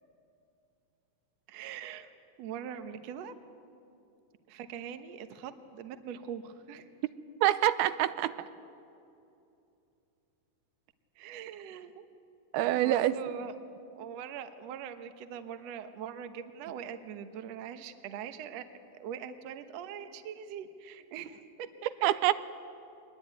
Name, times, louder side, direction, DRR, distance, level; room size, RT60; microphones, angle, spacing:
voice 1, 1.5-2.1 2.4-3.3 4.5-6.9 11.2-12.1 12.7-13.6 14.0-18.6 19.0-22.1, right 8 dB, 65° right, 9 dB, 1.7 m, -42 dB
voice 2, 7.4-8.3 12.5-13.1 22.0-22.3, right 14 dB, 90° right, 13 dB, 2.7 m, -25 dB
23.5 x 21.0 x 9.3 m, 2.6 s
omnidirectional pair, 4.3 m